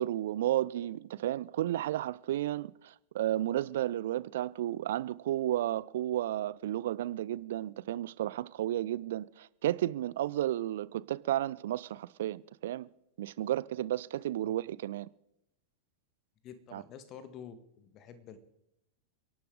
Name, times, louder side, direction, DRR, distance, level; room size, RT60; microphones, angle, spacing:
voice 1, 0.0-12.9 13.2-15.1 16.7-16.8, right 13 dB, 55° right, 0.5 m, -33 dB
voice 2, 16.4-18.4, left 8 dB, 35° left, 1.7 m, -49 dB
29.5 x 11.5 x 3.8 m
figure-of-eight pair, 90°, 0 cm